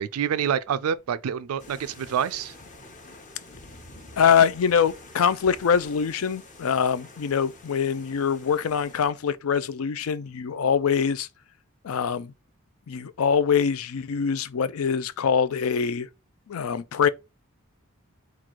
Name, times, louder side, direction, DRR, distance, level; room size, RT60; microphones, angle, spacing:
voice 1, 0.0-2.5, right 8 dB, 85° right, 0.4 m, -27 dB
sound 1, 1.6-9.1, left 2 dB, 35° left, 0.9 m, -47 dB
voice 2, 4.2-11.3 11.8-12.3 12.9-16.1 16.5-17.1, left 7 dB, 75° left, 0.4 m, -24 dB
3.9 x 2.4 x 4.5 m
head